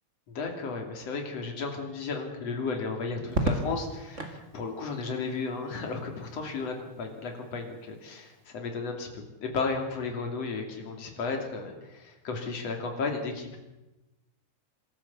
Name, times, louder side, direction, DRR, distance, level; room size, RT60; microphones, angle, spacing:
voice 1, 0.3-13.6, left 4 dB, 40° left, 3 dB, 3.7 m, -34 dB
Crackle, 3.3-4.4 6.0-6.6, right 2 dB, 30° right, 1.4 m, -31 dB
26.5 x 13.5 x 7.3 m, 1.0 s
omnidirectional pair, 4.6 m